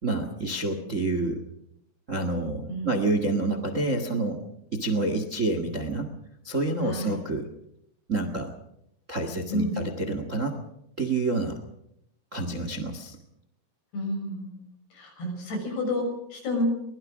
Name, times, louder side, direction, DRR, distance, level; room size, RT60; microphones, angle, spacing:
voice 1, 0.0-1.4 2.1-4.4 4.7-6.1 6.4-7.5 8.1-8.5 9.1-10.6 11.0-11.6 12.3-13.2, right 2 dB, 60° right, 8 dB, 0.7 m, -28 dB
voice 2, 6.8-7.2 9.5-9.8 13.9-14.6 14.9-16.6, left 1 dB, 80° left, 3 dB, 8.5 m, -30 dB
23.0 x 21.0 x 6.2 m, 0.78 s
omnidirectional pair, 4.7 m